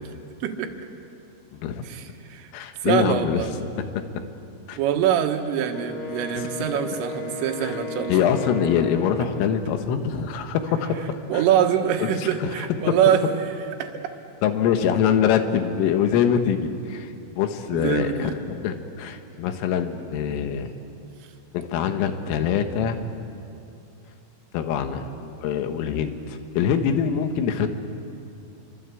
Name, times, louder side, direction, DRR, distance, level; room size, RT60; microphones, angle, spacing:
voice 1, 0.4-0.7 1.8-2.5 2.8-3.5 4.8-8.2 11.3-13.2 13.5-13.9 17.7-18.4, right 9 dB, 75° right, 4 dB, 4.0 m, -24 dB
voice 2, 1.5-1.9 2.5-3.4 3.8-4.1 4.7-4.8 7.6-7.7 8.1-11.4 12.0-12.1 12.4-12.5 12.9-13.0 14.4-20.7 21.5-23.1 24.5-27.7, left 8 dB, 80° left, 7 dB, 4.0 m, -24 dB
Wind instrument woodwind instrument, 5.7-9.7, left 3 dB, 60° left, 0.9 m, -34 dB
27.5 x 24.5 x 8.4 m, 2.6 s
omnidirectional pair, 5.9 m